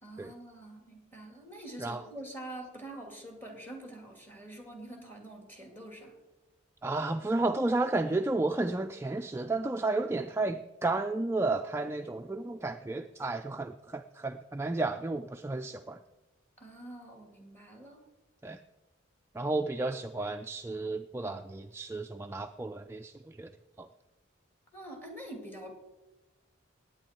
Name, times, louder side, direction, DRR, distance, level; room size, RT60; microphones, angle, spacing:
voice 1, 0.0-6.1 16.6-18.0 24.7-25.8, right 1 dB, 10° left, 2 dB, 2.4 m, -45 dB
voice 2, 6.8-16.0 18.4-18.6 19.3-23.5 23.8-23.9, right 2 dB, 15° right, 6 dB, 0.3 m, -32 dB
18.5 x 8.9 x 4.4 m, 1.1 s
head